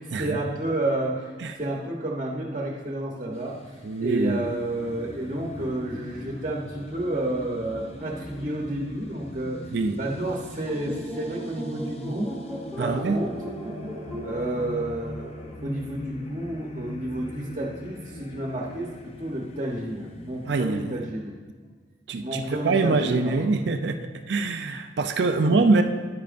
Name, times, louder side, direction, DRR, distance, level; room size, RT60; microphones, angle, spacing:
voice 1, 0.0-1.3 1.6-12.3 12.8-13.3 14.2-18.9 19.2-21.3 22.2-23.5 25.2-25.7, right 1 dB, 40° right, -1 dB, 0.9 m, -31 dB
sound 1, 3.3-20.9, left 1 dB, 35° left, 0.6 m, -42 dB
voice 2, 3.8-4.4 9.7-10.0 12.8-13.2 20.5-21.0 22.1-24.0 24.3-25.8, right 3 dB, 70° right, 7 dB, 0.5 m, -24 dB
sound 2, 10.7-16.0, equal, ahead, 1.4 m, -37 dB
10.5 x 10.0 x 2.5 m, 1.4 s
head